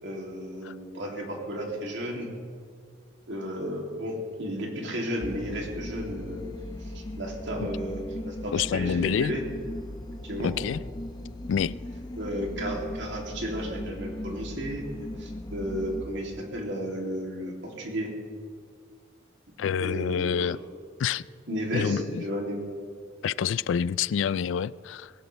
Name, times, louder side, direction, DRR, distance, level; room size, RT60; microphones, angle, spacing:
voice 1, 0.0-2.3 3.3-6.4 6.8-9.4 10.2-10.5 12.2-18.1 19.8-20.5 21.5-22.6, equal, 65° right, 0 dB, 2.8 m, -33 dB
sound 1, 5.2-16.0, left 1 dB, 20° left, 0.8 m, -38 dB
voice 2, 8.5-9.3 10.4-10.8 11.5-11.8 19.6-20.6 21.0-21.3 21.7-22.2 23.2-25.1, left 7 dB, 70° left, 19 dB, 0.3 m, -27 dB
20.0 x 16.0 x 3.3 m, 2.1 s
head